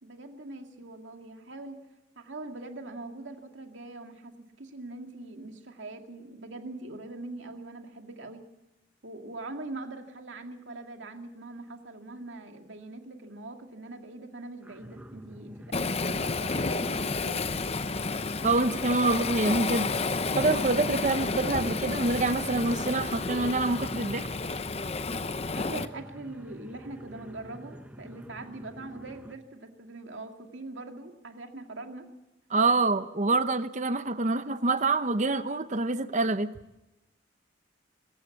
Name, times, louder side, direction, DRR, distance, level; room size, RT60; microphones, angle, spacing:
voice 1, 0.0-1.8 2.2-8.5 9.0-17.5 25.6-32.1, right 2 dB, 85° right, 4 dB, 2.3 m, -42 dB
sound 1, 14.6-29.4, equal, 10° right, 0.9 m, -47 dB
Waves surf, 15.7-25.9, left 3 dB, 35° left, 0.7 m, -31 dB
voice 2, 18.4-19.9 20.4-24.3 32.5-36.5, right 3 dB, 40° right, 11 dB, 0.8 m, -26 dB
23.0 x 14.5 x 8.4 m, 0.95 s
head